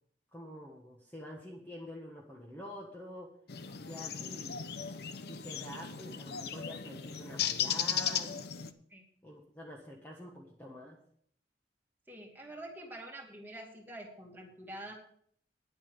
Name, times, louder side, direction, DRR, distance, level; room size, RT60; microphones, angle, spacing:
voice 1, 0.3-3.3 3.8-4.6 5.2-8.4 9.2-11.0, equal, 10° left, -2 dB, 1.5 m, -47 dB
sound 1, 3.5-8.7, left 8 dB, 60° left, 0.8 m, -36 dB
voice 2, 12.1-14.9, right 1 dB, 10° right, 0 dB, 2.5 m, -46 dB
10.0 x 8.6 x 7.2 m, 0.63 s
head